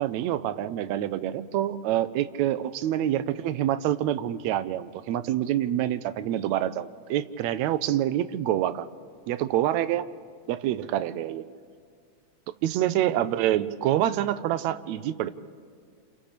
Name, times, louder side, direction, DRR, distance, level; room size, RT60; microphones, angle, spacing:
voice 1, 0.0-8.9 9.3-10.1 10.5-11.5 12.6-15.3, right 12 dB, 80° right, 12 dB, 2.0 m, -26 dB
30.0 x 29.0 x 3.4 m, 2.1 s
omnidirectional pair, 3.3 m